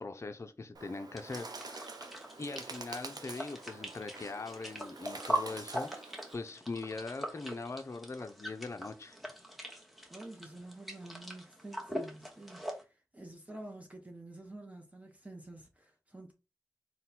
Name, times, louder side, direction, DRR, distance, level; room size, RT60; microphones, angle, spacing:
voice 1, 0.0-1.9 2.4-9.2, left 3 dB, 40° left, 0.5 m, -41 dB
Bird, 0.7-6.3, right 3 dB, 65° right, 0.6 m, -47 dB
sound 1, 1.2-12.8, right 1 dB, ahead, 1.0 m, -42 dB
voice 2, 10.1-16.3, right 2 dB, 20° right, 0.7 m, -49 dB
3.8 x 2.2 x 4.2 m
wide cardioid pair, 70°, 7 cm